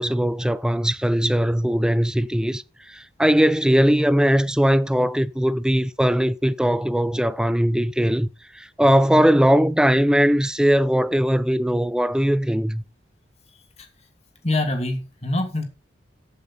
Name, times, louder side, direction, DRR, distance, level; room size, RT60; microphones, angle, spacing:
voice 1, 0.0-2.6 2.9-8.3 8.6-12.8, equal, 5° right, 0.5 m, -20 dB
voice 2, 14.4-15.6, left 2 dB, 35° left, 2.5 m, -25 dB
13.5 x 8.4 x 4.2 m
head